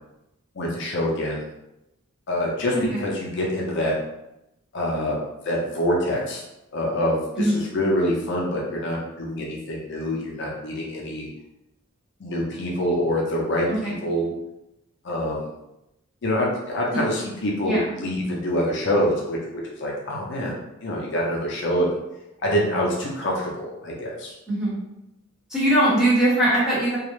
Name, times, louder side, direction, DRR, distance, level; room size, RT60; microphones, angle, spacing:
voice 1, 0.6-1.5 2.3-3.9 4.7-5.2 5.4-6.4 6.7-11.3 12.2-14.3 15.0-15.5 16.2-19.4 19.6-20.5 20.8-21.9 22.4-24.3, equal, 55° left, -3 dB, 0.5 m, -25 dB
voice 2, 2.7-3.1 7.4-7.6 13.8-14.0 17.6-17.9 24.5-24.8 25.5-27.0, right 1 dB, 5° right, -9 dB, 0.8 m, -21 dB
2.3 x 2.0 x 3.0 m, 0.90 s
head